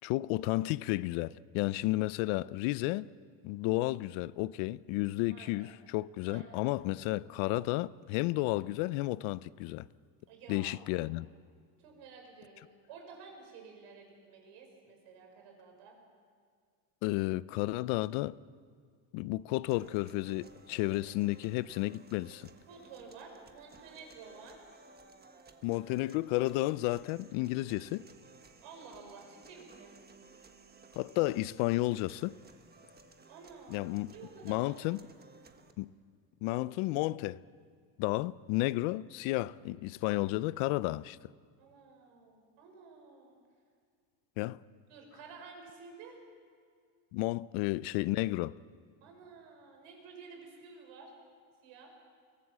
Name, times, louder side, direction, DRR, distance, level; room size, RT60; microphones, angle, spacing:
voice 1, 0.0-3.1 3.4-9.9 10.5-11.3 17.0-18.3 19.1-22.5 25.6-28.1 30.9-32.3 33.7-34.1 34.4-35.0 35.8-35.9 36.4-37.4 38.0-41.2 44.4-44.6 47.1-48.5, left 19 dB, 75° left, 0.7 m, -32 dB
voice 2, 5.3-5.7 6.3-6.7 10.3-10.8 11.8-16.0 22.7-24.6 28.6-29.9 33.3-34.8 41.6-43.4 44.9-46.2 49.0-51.1 51.6-51.9, right 5 dB, 75° right, 5.9 m, -52 dB
sound 1, 19.7-35.7, right 4 dB, 20° right, 1.4 m, -58 dB
22.5 x 17.5 x 7.5 m
cardioid pair, 120°, 47 cm